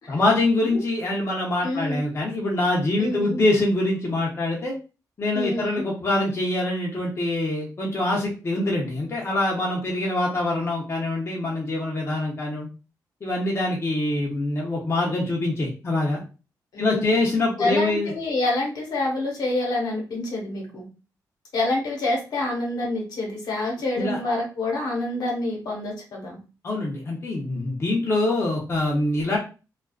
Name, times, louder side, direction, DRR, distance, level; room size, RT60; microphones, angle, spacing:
voice 1, 0.1-4.7 5.2-12.7 13.2-16.2 16.8-18.1 24.0-24.2 26.6-29.4, left 2 dB, 40° left, -3 dB, 0.7 m, -24 dB
voice 2, 1.6-2.1 3.0-3.4 5.3-5.8 16.7-17.2 17.6-20.9 21.5-26.4, left 2 dB, 80° left, -1 dB, 1.1 m, -27 dB
2.4 x 2.3 x 2.3 m, 0.32 s
cardioid pair, 95°, 7 cm